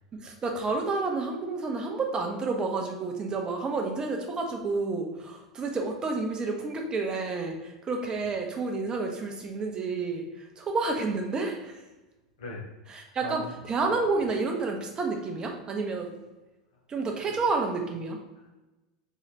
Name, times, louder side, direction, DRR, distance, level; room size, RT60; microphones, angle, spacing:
voice 1, 0.1-10.2 10.6-11.8 12.9-16.2 16.9-18.2, right 3 dB, 25° right, 2 dB, 0.8 m, -30 dB
voice 2, 12.4-13.5 17.3-17.4 18.3-18.5, left 2 dB, 70° left, -2 dB, 1.0 m, -41 dB
3.2 x 2.8 x 2.8 m, 1.1 s
hypercardioid pair, 85°, 3 cm